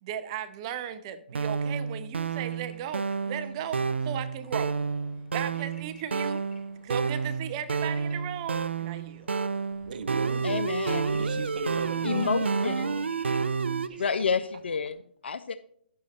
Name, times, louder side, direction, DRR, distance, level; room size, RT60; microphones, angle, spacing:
voice 1, 0.0-4.7 5.3-6.4 6.8-9.3, right 9 dB, 30° right, 0.5 m, -36 dB
sound 1, 1.3-13.9, right 5 dB, 85° right, 0.5 m, -30 dB
Bird / Traffic noise roadway noise, 2.2-14.9, left 2 dB, 60° left, 3.4 m, -55 dB
voice 2, 9.8-10.6 11.2-13.0 13.7-14.2, right 5 dB, 50° right, 0.9 m, -40 dB
voice 3, 10.4-11.2 12.0-12.9 14.0-15.5, left 5 dB, 75° left, 0.4 m, -29 dB
9.4 x 6.5 x 4.2 m
hypercardioid pair, 145°, 6 cm